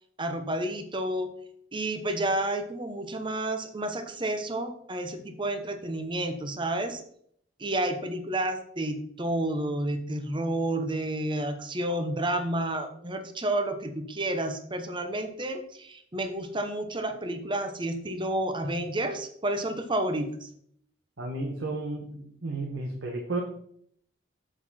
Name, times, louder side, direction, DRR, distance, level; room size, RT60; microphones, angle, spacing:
voice 1, 0.2-1.3 1.7-7.0 7.6-20.5, right 1 dB, 25° right, 8 dB, 1.0 m, -30 dB
voice 2, 21.2-23.4, right 2 dB, 75° right, 1 dB, 1.3 m, -33 dB
7.7 x 6.9 x 4.3 m, 0.66 s
head